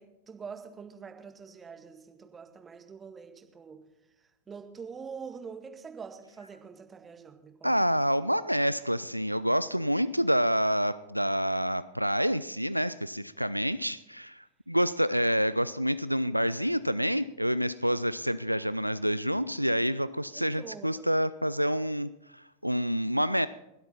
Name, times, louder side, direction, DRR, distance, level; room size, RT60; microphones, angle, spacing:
voice 1, 0.0-3.8 4.5-7.7 20.3-21.1, right 6 dB, 20° right, 5 dB, 1.8 m, -45 dB
voice 2, 7.6-23.5, equal, 90° right, 16 dB, 0.4 m, -28 dB
21.5 x 8.2 x 4.2 m, 0.90 s
figure-of-eight pair, 90°, 0 cm